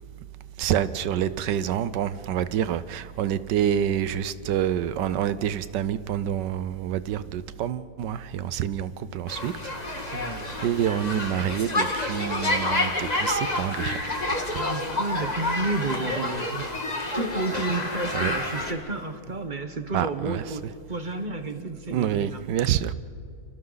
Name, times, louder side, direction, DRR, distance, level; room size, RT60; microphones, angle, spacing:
voice 1, 0.6-9.5 9.9-10.4 10.6-14.1 18.1-18.3 19.9-20.4 21.9-22.9, right 10 dB, 85° right, 1.4 m, -27 dB
sound 1, 9.3-18.7, left 2 dB, 25° left, 2.0 m, -29 dB
voice 2, 10.1-10.6 14.5-16.7 17.1-22.6, right 3 dB, 30° right, 1.1 m, -31 dB
29.5 x 26.5 x 4.0 m
omnidirectional pair, 1.8 m